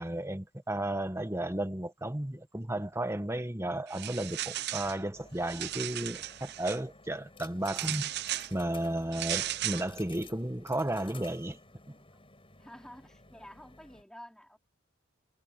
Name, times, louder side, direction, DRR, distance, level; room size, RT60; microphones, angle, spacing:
voice 1, 0.0-8.1 8.5-11.6, right 1 dB, 15° right, 1.3 m, -33 dB
sound 1, 3.9-5.0 5.4-6.8 7.7-8.5 9.1-9.9, right 13 dB, 55° right, 0.6 m, -35 dB
sound 2, 5.1-14.0, left 3 dB, 25° left, 7.4 m, -55 dB
voice 2, 12.6-14.6, equal, 5° left, 4.1 m, -50 dB
head